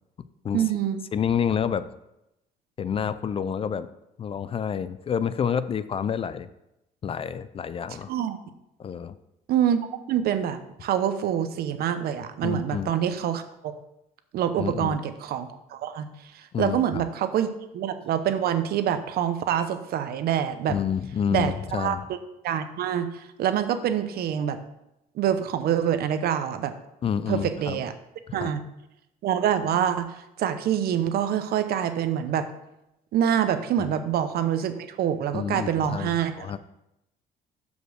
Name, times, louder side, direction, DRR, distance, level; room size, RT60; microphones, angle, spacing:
voice 1, 0.5-1.0 8.1-8.4 9.5-9.8 10.1-13.4 14.3-16.1 16.3-20.8 21.3-22.2 22.4-24.6 25.2-26.7 27.3-27.9 28.3-28.6 29.2-30.1 30.4-32.5 33.1-36.6, right 9 dB, 65° right, 9 dB, 0.8 m, -26 dB
voice 2, 1.1-1.9 2.8-3.9 4.2-6.5 7.0-8.1 8.8-9.1 12.4-12.9 14.6-15.0 16.5-17.0 20.7-22.0 27.0-27.8 28.3-28.5 33.8-33.9 35.3-36.6, left 7 dB, 35° left, 14 dB, 0.4 m, -28 dB
6.4 x 5.3 x 6.3 m, 0.88 s
cardioid pair, 110°, 17 cm